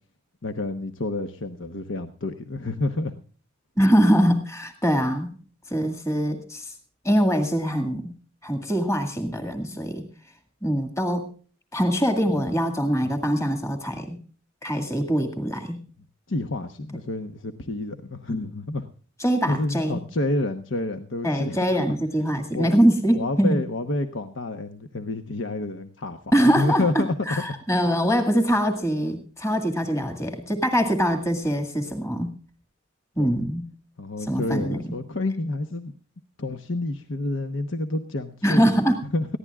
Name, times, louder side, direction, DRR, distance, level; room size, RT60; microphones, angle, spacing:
voice 1, 0.4-3.1 16.3-18.8 19.5-21.9 22.5-22.7 23.2-27.4 33.2-33.3 34.0-35.9 36.4-38.7 39.1-39.3, left 2 dB, 65° left, 7 dB, 1.1 m, -29 dB
voice 2, 3.8-5.3 5.7-6.7 7.0-8.1 8.4-10.0 10.6-11.3 11.7-14.2 14.6-15.8 19.2-20.0 21.2-23.6 26.3-32.3 33.2-33.7 34.2-34.9 38.4-39.0, equal, 15° left, 6 dB, 2.0 m, -23 dB
21.0 x 15.5 x 2.4 m, 0.40 s
head